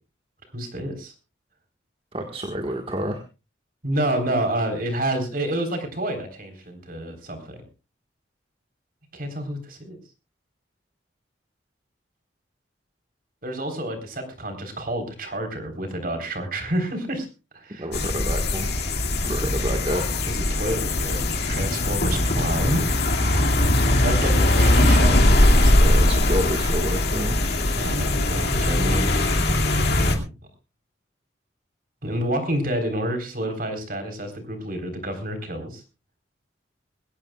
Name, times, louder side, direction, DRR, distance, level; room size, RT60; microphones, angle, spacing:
voice 1, 0.5-1.1 3.8-7.6 9.1-10.0 13.4-17.3 17.5-17.9 20.2-22.9 24.0-25.2 25.6-26.0 27.8-30.3 32.0-35.8, right 1 dB, 45° right, 7 dB, 3.9 m, -28 dB
voice 2, 2.1-3.2 17.7-18.8 19.2-20.1 25.7-27.4, equal, 30° right, 4 dB, 1.5 m, -29 dB
sound 1, 17.9-30.2, left 1 dB, 55° left, 2.2 m, -20 dB
21.5 x 17.0 x 2.3 m, 0.30 s
head